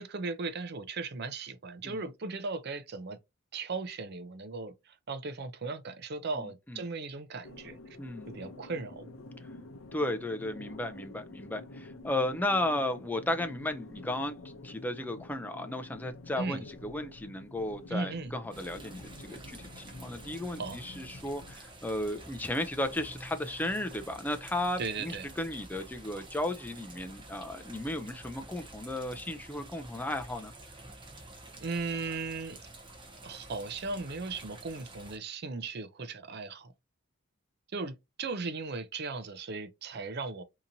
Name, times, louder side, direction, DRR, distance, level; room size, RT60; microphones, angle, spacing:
voice 1, 0.0-3.2 3.5-7.8 8.3-9.1 16.4-16.6 17.9-18.4 20.6-20.8 24.8-25.3 31.6-32.6 33.2-36.7 37.7-40.4, right 4 dB, 50° right, 0.5 m, -37 dB
voice 2, 6.4-6.8 8.0-8.3 9.9-14.3 14.6-30.5, left 1 dB, 10° left, 0.4 m, -34 dB
sound 1, 7.4-21.6, left 2 dB, 65° left, 0.6 m, -48 dB
sound 2, 18.5-35.2, right 2 dB, 25° right, 0.8 m, -49 dB
3.9 x 2.9 x 2.6 m
head